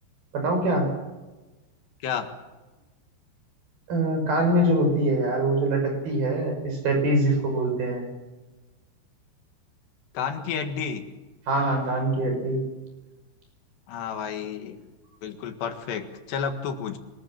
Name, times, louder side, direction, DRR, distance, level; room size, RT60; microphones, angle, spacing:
voice 1, 0.3-0.9 3.9-8.1 11.5-12.6, right 1 dB, 55° right, 3 dB, 7.6 m, -23 dB
voice 2, 10.1-11.1 13.9-14.8 15.2-17.0, left 7 dB, 70° left, 6 dB, 3.8 m, -31 dB
26.0 x 20.5 x 7.4 m, 1.1 s
omnidirectional pair, 5.2 m